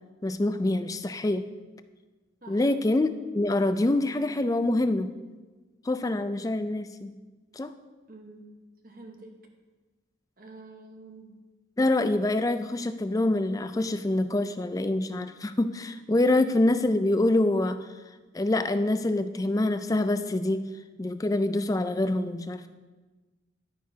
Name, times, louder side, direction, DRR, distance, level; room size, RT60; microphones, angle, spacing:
voice 1, 0.2-1.5 2.5-5.1 5.8-7.2 7.5-7.7 11.8-17.8 18.3-20.6 21.0-22.7, left 2 dB, 20° left, 10 dB, 0.3 m, -25 dB
voice 2, 8.1-8.5 8.8-9.4 10.4-11.4, right 2 dB, 45° right, 3 dB, 1.1 m, -47 dB
11.0 x 9.2 x 2.8 m, 1.3 s
head